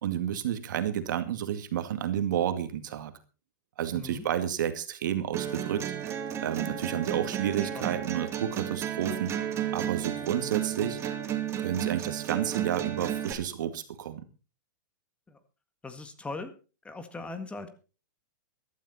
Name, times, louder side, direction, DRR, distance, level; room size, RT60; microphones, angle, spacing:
voice 1, 0.0-3.1 3.8-5.8 6.4-9.3 9.7-11.0 11.6-14.2, right 10 dB, 70° right, 9 dB, 2.2 m, -30 dB
voice 2, 3.9-4.2 7.6-8.0 15.3-15.4 15.8-16.5 16.8-17.7, left 3 dB, 10° left, 10 dB, 1.7 m, -40 dB
sound 1, 5.3-13.3, right 10 dB, 25° right, 2.5 m, -33 dB
15.0 x 12.5 x 4.3 m, 0.35 s
hypercardioid pair, 130°, 11 cm